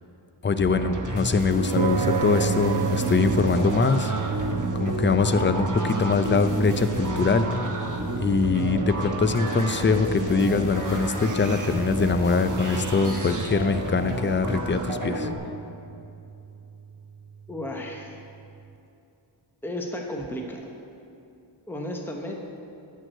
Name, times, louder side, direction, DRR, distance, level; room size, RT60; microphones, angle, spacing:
voice 1, 0.4-4.1 4.7-7.5 8.2-15.3, left 4 dB, 25° left, 10 dB, 0.4 m, -23 dB
sound 1, 0.6-15.4, right 1 dB, 40° right, 1.1 m, -31 dB
sound 2, 1.8-18.3, right 7 dB, 60° right, 0.5 m, -33 dB
voice 2, 17.5-18.2 19.6-20.6 21.7-22.3, left 1 dB, 5° left, 0 dB, 1.0 m, -33 dB
11.0 x 4.7 x 7.7 m, 2.7 s
wide cardioid pair, 45°, 48 cm